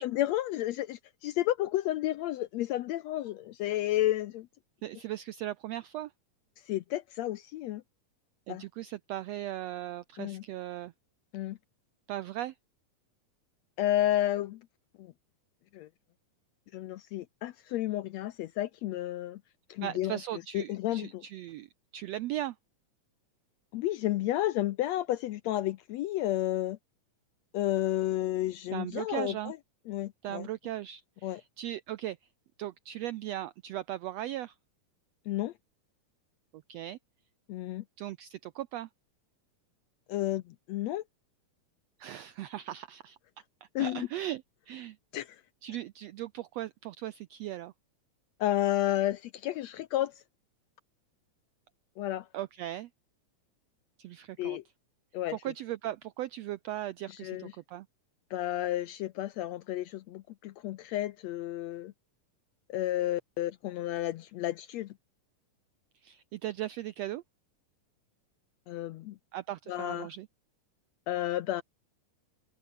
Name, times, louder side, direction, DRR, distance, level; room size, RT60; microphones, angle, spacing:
voice 1, 0.0-4.5 6.7-7.8 8.5-8.6 10.2-10.4 11.3-11.6 13.8-14.6 15.0-15.1 15.7-15.9 16.7-19.4 19.7-20.1 20.5-21.2 23.7-26.8 27.5-29.6 29.9-30.5 31.2-31.4 35.3-35.5 37.5-37.8 40.1-41.0 43.7-44.1 45.1-45.3 48.4-50.1 52.0-52.3 54.4-54.6 55.1-55.4 57.1-57.5 58.3-61.9 62.7-64.9 68.7-69.1 69.7-70.1 71.1-71.6, left 14 dB, 75° left, 1.6 m, -31 dB
voice 2, 4.8-6.1 8.5-10.9 12.1-12.6 19.8-21.7 21.9-22.5 28.7-29.5 30.2-32.2 32.6-34.5 36.5-37.0 38.0-38.9 42.0-43.2 43.8-45.0 45.6-47.7 52.3-52.9 54.0-54.6 55.3-57.9 66.0-67.2 69.3-70.3, right 13 dB, 85° right, 1.5 m, -38 dB
omnidirectional pair, 3.7 m